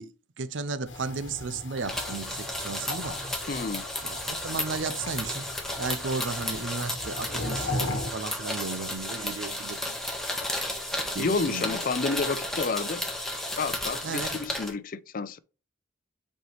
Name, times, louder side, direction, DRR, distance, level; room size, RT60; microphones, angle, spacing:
voice 1, 0.0-3.2 4.0-5.5 5.8-10.0 10.9-11.8 14.0-14.4, right 4 dB, 70° right, 0.6 m, -35 dB
sound 1, 0.9-8.1, left 2 dB, 70° left, 1.2 m, -38 dB
sound 2, 1.8-14.7, left 1 dB, ahead, 1.4 m, -33 dB
voice 2, 3.5-3.8 11.2-13.0 13.6-15.4, left 4 dB, 45° left, 0.5 m, -30 dB
8.0 x 4.4 x 3.2 m
head